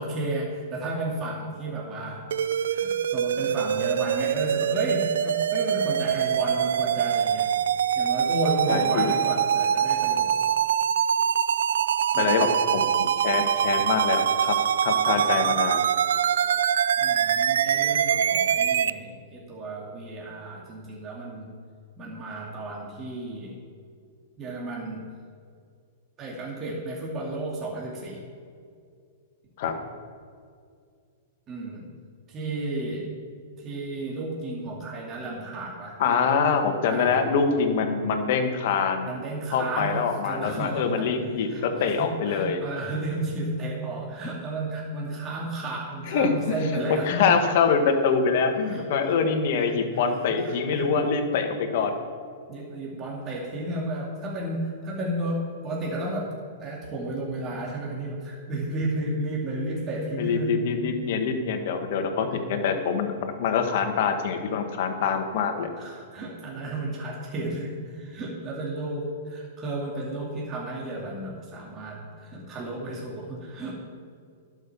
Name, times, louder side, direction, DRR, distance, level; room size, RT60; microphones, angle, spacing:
voice 1, 0.0-2.3 2.6-7.5 8.0-10.3 12.1-12.5 17.0-21.5 22.0-23.5 24.4-25.1 26.2-28.2 31.5-31.9 32.3-33.1 33.6-36.0 36.8-37.2 39.0-41.1 41.4-47.3 48.6-49.2 49.6-50.1 50.4-51.3 52.5-60.6 62.9-63.0 65.8-73.7, right 2 dB, 30° right, -3 dB, 2.4 m, -33 dB
sound 1, 2.3-18.9, right 8 dB, 75° right, 0.4 m, -24 dB
voice 2, 8.7-9.1 12.2-14.5 14.8-15.8 29.6-29.7 36.0-39.1 39.5-42.6 46.1-52.0 60.2-65.7, left 5 dB, 60° left, 6 dB, 1.6 m, -25 dB
12.0 x 6.5 x 7.1 m, 2.2 s
hypercardioid pair, 120°, 0 cm